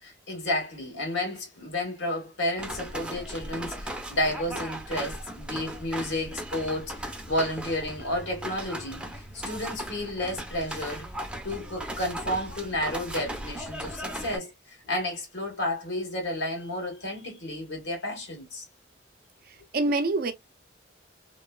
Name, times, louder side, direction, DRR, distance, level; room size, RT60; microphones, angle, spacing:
voice 1, 0.0-11.1 11.4-18.6, left 1 dB, 75° left, 1.5 m, -31 dB
sound 1, 2.6-14.4, right 1 dB, 5° right, 0.6 m, -37 dB
voice 2, 19.4-20.3, right 2 dB, 50° right, 0.5 m, -26 dB
3.0 x 2.2 x 2.3 m
head